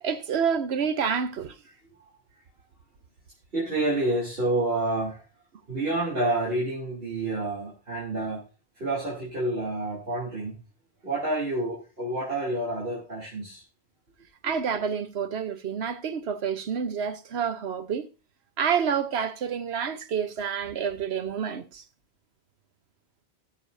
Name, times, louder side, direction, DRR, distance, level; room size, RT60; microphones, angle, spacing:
voice 1, 0.0-1.6 14.4-18.1 18.6-21.8, right 7 dB, 90° right, 1.1 m, -28 dB
voice 2, 3.5-5.2 5.7-8.4 8.8-10.5 11.0-13.6, right 2 dB, 65° right, 3.4 m, -28 dB
18.5 x 6.8 x 2.6 m
omnidirectional pair, 1.0 m